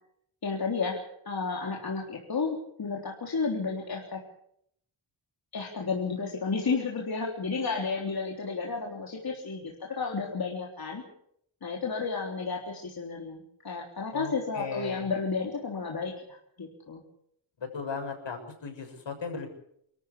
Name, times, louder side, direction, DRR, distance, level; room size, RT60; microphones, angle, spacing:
voice 1, 0.4-4.2 5.5-11.0 11.6-17.0, left 4 dB, 50° left, -1 dB, 3.7 m, -32 dB
voice 2, 14.1-15.1 17.6-19.5, left 5 dB, 65° left, 4 dB, 6.9 m, -36 dB
28.5 x 13.5 x 8.4 m, 0.72 s
wide cardioid pair, 140°, 48 cm